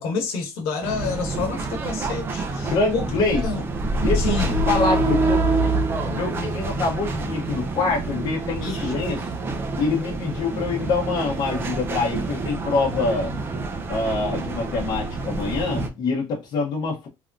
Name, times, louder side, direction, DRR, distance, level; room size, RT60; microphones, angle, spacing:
voice 1, 0.0-3.0 3.4-3.6 4.1-4.5 8.6-8.9, left 4 dB, 75° left, 1.2 m, -28 dB
sound 1, 0.8-15.9, right 2 dB, 25° right, 0.4 m, -26 dB
voice 2, 2.6-3.7 4.0-5.4 6.1-9.3 9.8-13.3 13.9-17.1, left 3 dB, 45° left, 0.9 m, -25 dB
3.4 x 2.6 x 2.3 m
cardioid pair, 180°, 10 cm